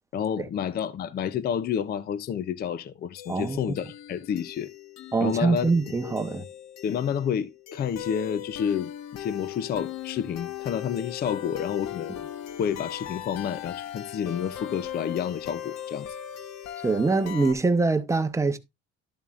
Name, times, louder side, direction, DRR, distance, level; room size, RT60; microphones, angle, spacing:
voice 1, 0.1-4.7 5.2-5.7 6.0-6.1 6.8-12.2 12.6-16.1, left 8 dB, 35° left, 0.5 m, -29 dB
sound 1, 3.2-17.5, left 11 dB, 65° left, 1.1 m, -39 dB
voice 2, 3.3-3.7 5.1-6.4 16.8-18.6, right 3 dB, 10° right, 0.7 m, -24 dB
12.5 x 7.2 x 2.4 m
cardioid pair, 155°, 29 cm